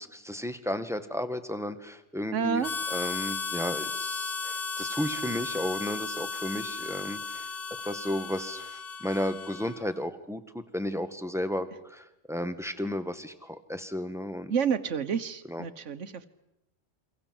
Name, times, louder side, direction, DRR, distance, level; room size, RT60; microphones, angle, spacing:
voice 1, 0.0-2.6 2.9-7.5 7.8-14.5 15.5-15.6, left 1 dB, ahead, 9 dB, 1.8 m, -33 dB
voice 2, 2.3-2.7 14.5-16.3, right 7 dB, 90° right, 10 dB, 1.5 m, -29 dB
Harmonica, 2.6-9.9, left 4 dB, 55° left, 1.4 m, -35 dB
27.5 x 25.5 x 7.9 m, 0.89 s
omnidirectional pair, 1.2 m